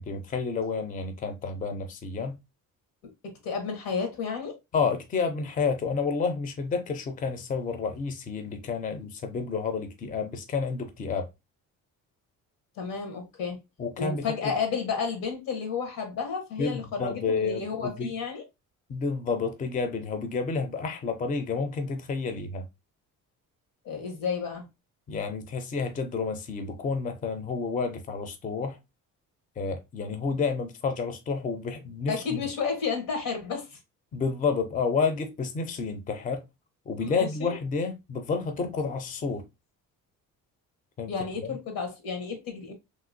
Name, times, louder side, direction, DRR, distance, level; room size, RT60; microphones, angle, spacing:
voice 1, 0.1-2.4 4.7-11.3 13.8-14.5 16.6-18.1 18.9-22.7 25.1-28.8 29.6-32.4 34.1-36.4 36.9-39.4 41.0-41.1 41.4-41.6, left 5 dB, 25° left, 0.4 m, -30 dB
voice 2, 3.2-4.6 12.8-13.6 14.0-18.4 23.8-24.7 32.1-33.8 37.0-37.6 41.1-42.7, left 5 dB, 90° left, 1.2 m, -32 dB
2.9 x 2.9 x 2.5 m
cardioid pair, 125°, 33 cm